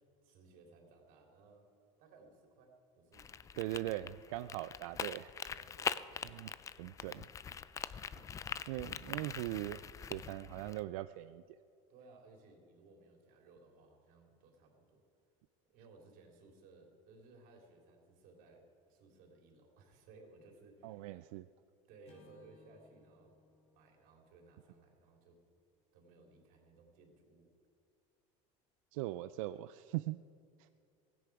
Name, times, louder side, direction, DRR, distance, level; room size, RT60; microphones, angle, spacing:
voice 1, 0.0-1.7 2.0-3.4 5.5-6.2 11.9-15.0 15.7-21.1 21.9-23.3 23.7-25.4 25.9-27.5, right 3 dB, 60° right, 1 dB, 3.5 m, -61 dB
sound 1, 3.1-10.8, left 7 dB, 20° left, 0.4 m, -43 dB
voice 2, 3.6-5.4 6.2-6.5 6.8-7.3 8.1-8.3 8.7-11.4 20.8-21.5 28.9-30.2 30.6-30.7, right 16 dB, 90° right, 13 dB, 0.4 m, -40 dB
Acoustic guitar / Strum, 22.0-26.5, left 3 dB, 40° left, 3.5 m, -68 dB
16.5 x 16.5 x 4.8 m, 2.5 s
supercardioid pair, 135°, 17 cm